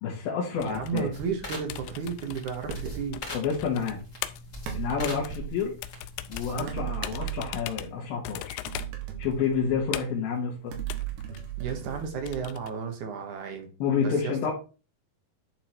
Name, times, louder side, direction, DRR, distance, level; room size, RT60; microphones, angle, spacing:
voice 1, 0.0-1.1 3.3-4.0 4.7-5.7 6.3-8.6 9.2-10.7 13.8-14.5, left 6 dB, 70° left, -2 dB, 3.3 m, -29 dB
sound 1, 0.5-12.7, left 15 dB, 90° left, 2.6 m, -41 dB
voice 2, 0.6-3.3 6.5-6.8 11.6-13.7 14.0-14.5, right 6 dB, 60° right, 4 dB, 2.5 m, -33 dB
sound 2, 1.1-6.8, left 1 dB, 30° left, 2.3 m, -42 dB
sound 3, 2.7-3.1 4.7-5.6 6.7-7.9 8.7-10.0 10.7-12.6, right 11 dB, 80° right, 3.4 m, -36 dB
11.0 x 3.8 x 4.5 m, 0.33 s
omnidirectional pair, 4.5 m